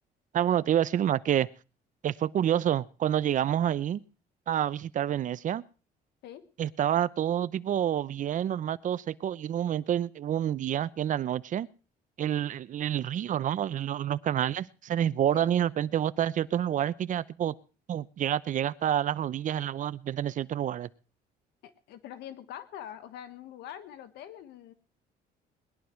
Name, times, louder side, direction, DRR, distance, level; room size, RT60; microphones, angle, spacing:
voice 1, 0.3-1.5 2.0-4.0 4.5-5.6 6.6-11.7 12.2-17.5 17.9-20.9, right 10 dB, 50° right, 18 dB, 0.7 m, -28 dB
voice 2, 21.6-24.7, left 10 dB, 80° left, 12 dB, 1.3 m, -44 dB
20.5 x 11.5 x 4.5 m, 0.36 s
cardioid pair, 110°, 17 cm